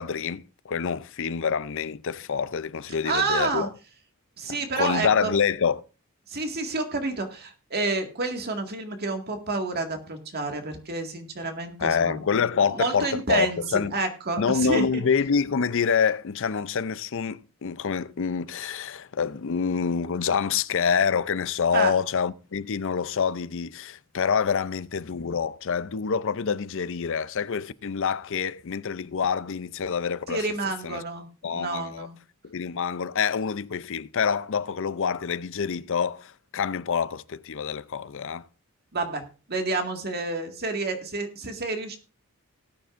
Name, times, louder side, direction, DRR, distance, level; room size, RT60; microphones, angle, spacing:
voice 1, 0.0-3.7 4.5-5.8 11.8-13.9 14.4-30.4 30.8-31.0 31.4-32.1 32.4-38.4, left 6 dB, 60° left, 0.5 m, -26 dB
voice 2, 2.9-3.7 4.4-5.4 6.3-15.0 21.7-22.0 30.3-32.2 38.9-39.2 39.5-42.0, right 3 dB, 45° right, 2.0 m, -29 dB
18.5 x 9.3 x 2.6 m
head